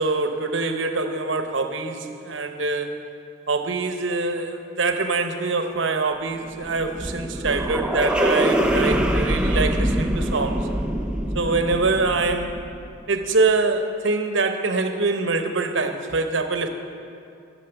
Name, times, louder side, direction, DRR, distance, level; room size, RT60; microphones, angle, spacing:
voice 1, 0.0-2.9 3.5-10.7 11.3-12.5 13.1-16.7, right 3 dB, 70° right, 6 dB, 0.9 m, -24 dB
sound 1, 6.4-12.9, right 1 dB, 5° right, 0.5 m, -24 dB
11.0 x 6.6 x 9.0 m, 2.5 s
head